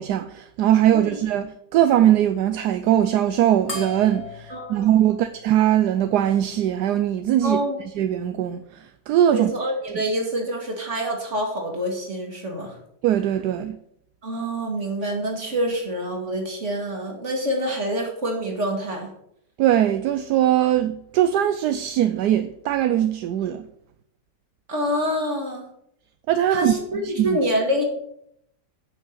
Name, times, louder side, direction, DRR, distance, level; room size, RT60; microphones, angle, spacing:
voice 1, 0.0-7.6 8.0-9.7 13.0-13.8 19.6-23.7 26.3-26.7 27.2-27.4, right 11 dB, 75° right, 1.1 m, -21 dB
sound 1, 3.7-6.5, left 3 dB, 40° left, 2.0 m, -38 dB
voice 2, 4.5-5.2 7.4-7.8 9.3-12.8 14.2-19.1 24.7-25.6 26.5-27.8, equal, 40° right, 2.6 m, -26 dB
9.3 x 6.1 x 7.3 m
omnidirectional pair, 1.9 m